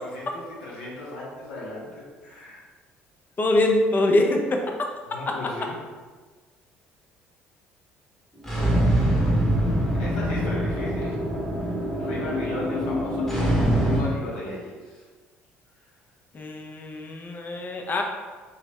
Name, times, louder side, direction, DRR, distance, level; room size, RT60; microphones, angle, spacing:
voice 1, 0.0-2.6 5.1-5.8 10.0-11.2 11.5-15.1 15.8-16.0, left 1 dB, 75° left, -5 dB, 0.7 m, -36 dB
voice 2, 3.4-4.6 16.3-18.0, left 2 dB, 35° left, 2 dB, 0.5 m, -23 dB
sound 1, 8.4-14.0, right 1 dB, 5° left, 0.9 m, -24 dB
2.9 x 2.3 x 3.3 m, 1.4 s
hypercardioid pair, 55°, 6 cm